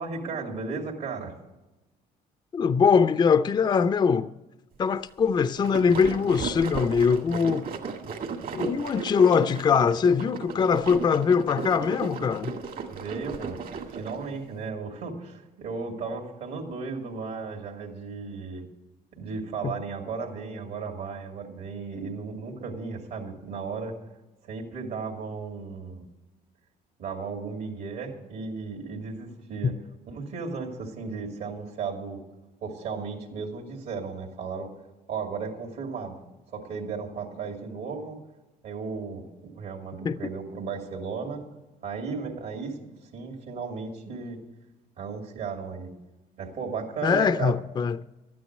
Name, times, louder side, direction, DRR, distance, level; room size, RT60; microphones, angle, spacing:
voice 1, 0.0-1.3 12.9-18.7 19.2-23.9 24.4-26.0 27.0-29.7 30.1-32.2 32.6-34.7 35.1-36.2 36.5-38.2 38.6-39.2 39.6-41.4 41.8-44.4 45.0-45.9 46.4-47.5, right 5 dB, 75° right, 2.5 m, -35 dB
voice 2, 2.5-4.3 4.8-7.7 8.5-12.5 19.6-19.7 40.0-40.2 47.0-48.0, left 6 dB, 25° left, 0.4 m, -22 dB
sound 1, 5.4-14.3, right 5 dB, 60° right, 1.7 m, -35 dB
13.0 x 9.5 x 6.5 m
cardioid pair, 110°, 17 cm